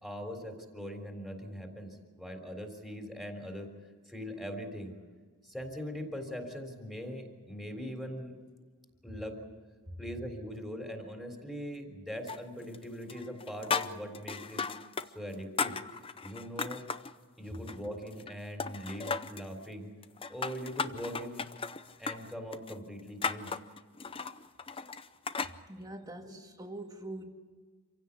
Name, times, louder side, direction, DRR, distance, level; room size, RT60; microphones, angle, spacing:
voice 1, 0.0-3.7 4.1-5.0 5.4-8.4 9.0-9.4 10.0-14.6 15.1-15.8 16.2-16.8 17.4-19.9 20.3-21.5 22.0-23.5 26.2-26.4, equal, ahead, 3 dB, 3.6 m, -41 dB
sound 1, 12.3-12.8 13.1-15.1 15.3-17.1 17.5-18.3 18.6-19.5 20.0-25.6, left 5 dB, 25° left, 0.6 m, -36 dB
voice 2, 25.7-27.2, right 1 dB, 15° right, 4 dB, 1.9 m, -43 dB
27.0 x 16.5 x 8.5 m, 1.5 s
head